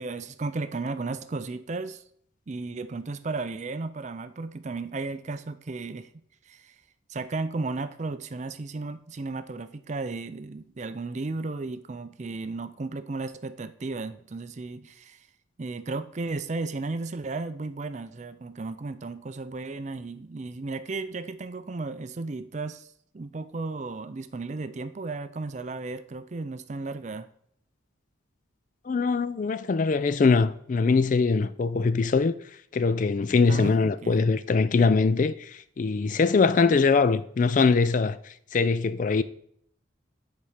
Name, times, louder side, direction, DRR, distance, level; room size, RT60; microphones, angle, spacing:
voice 1, 0.0-2.0 2.5-6.1 6.5-6.7 7.1-15.3 15.6-22.9 23.1-27.3 33.5-33.7 34.0-34.3, right 3 dB, 35° right, 0.4 m, -34 dB
voice 2, 28.9-32.4 32.7-39.2, left 4 dB, 40° left, 0.3 m, -22 dB
10.0 x 4.2 x 5.0 m
head